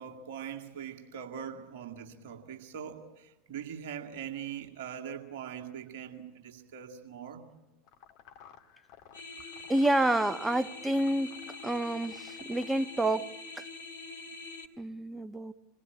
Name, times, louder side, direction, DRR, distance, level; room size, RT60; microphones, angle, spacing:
voice 1, 0.0-7.5, right 8 dB, 60° right, 4 dB, 2.2 m, -42 dB
sound 1, 7.9-13.1, left 9 dB, 50° left, 2.5 m, -55 dB
sound 2, 9.1-14.6, left 3 dB, 80° left, 2.7 m, -45 dB
voice 2, 9.7-11.4 11.6-13.7 14.8-15.5, right 1 dB, 10° right, 13 dB, 1.0 m, -29 dB
27.5 x 21.0 x 8.8 m, 1.1 s
figure-of-eight pair, 85°, 0 cm